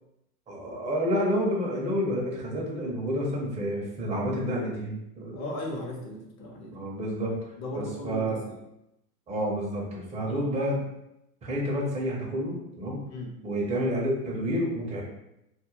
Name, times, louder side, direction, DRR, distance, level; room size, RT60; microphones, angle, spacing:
voice 1, 0.5-5.5 6.7-7.3 7.7-8.4 9.3-10.8 11.4-13.0 13.4-15.0, equal, 15° right, -3 dB, 0.6 m, -29 dB
voice 2, 5.3-6.8 7.6-8.6 10.3-10.4 13.1-13.3, left 1 dB, 35° left, 0 dB, 0.8 m, -37 dB
2.4 x 2.1 x 3.1 m, 0.85 s
hypercardioid pair, 100°, 46 cm